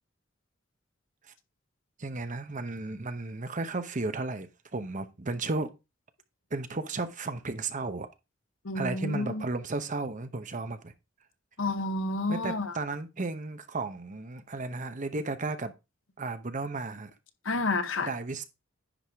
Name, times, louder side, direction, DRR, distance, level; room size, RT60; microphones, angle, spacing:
voice 1, 2.0-5.7 6.5-8.1 8.7-10.9 12.3-15.7 16.2-17.1 18.0-18.4, right 3 dB, 40° right, 0.9 m, -34 dB
voice 2, 8.6-9.4 11.6-12.7 17.4-18.1, left 2 dB, 80° left, 0.9 m, -30 dB
10.0 x 4.9 x 3.5 m
head